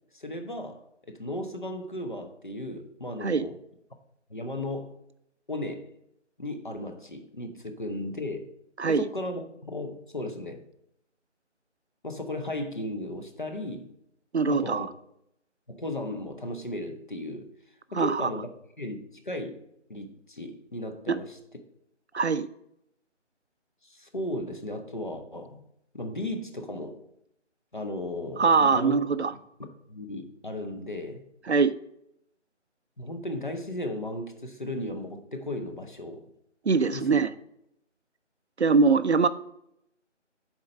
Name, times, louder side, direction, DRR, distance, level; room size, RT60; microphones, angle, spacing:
voice 1, 0.1-3.6 4.3-5.0 5.5-5.9 6.4-8.5 8.9-10.6 12.0-13.9 14.5-14.9 15.7-17.5 17.9-18.5 18.8-19.5 19.9-21.4 23.8-25.6 25.9-27.0 27.7-29.0 29.9-31.2 33.0-36.2 36.9-37.2, left 1 dB, 40° left, 6 dB, 0.8 m, -35 dB
voice 2, 14.3-14.9 18.0-18.3 21.1-21.2 22.1-22.5 28.4-29.3 31.5-31.7 36.7-37.3 38.6-39.3, right 4 dB, 65° right, 13 dB, 0.5 m, -22 dB
7.1 x 4.4 x 5.2 m, 0.77 s
figure-of-eight pair, 165°, 36 cm